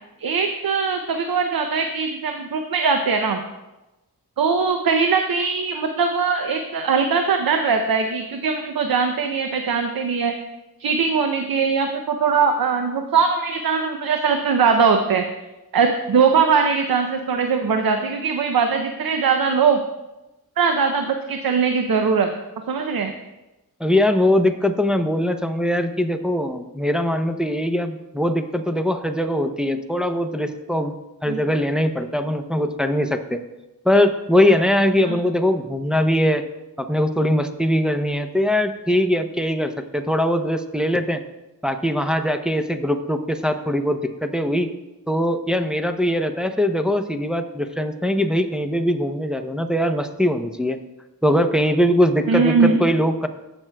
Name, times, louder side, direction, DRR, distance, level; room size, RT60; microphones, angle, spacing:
voice 1, 0.2-3.4 4.4-10.3 10.8-15.2 15.7-19.8 20.6-22.3 22.7-23.1 31.3-31.4 35.0-35.2 52.3-52.8, right 5 dB, 65° right, 5 dB, 0.7 m, -20 dB
voice 2, 23.8-30.9 31.2-33.4 33.8-36.4 36.8-41.2 41.6-44.7 45.1-50.8 51.2-53.3, left 1 dB, ahead, 5 dB, 0.7 m, -21 dB
14.5 x 6.1 x 2.3 m, 1.0 s
cardioid pair, 40°, 38 cm